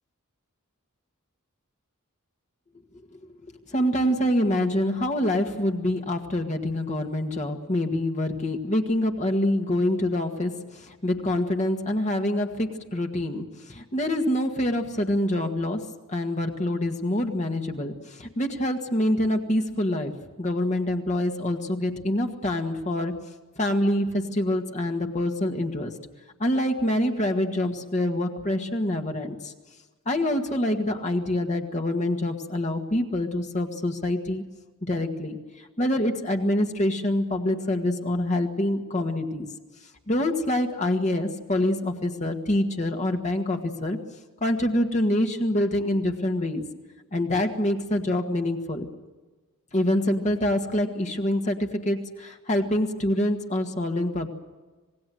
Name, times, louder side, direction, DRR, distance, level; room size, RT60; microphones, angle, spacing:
voice 1, 3.7-15.8 16.1-23.1 23.6-25.9 26.4-29.5 30.1-34.4 34.8-39.5 40.1-44.0 44.4-46.6 47.1-48.9 49.7-54.3, left 1 dB, 35° left, 4 dB, 1.8 m, -26 dB
26.5 x 19.0 x 7.8 m, 1.3 s
head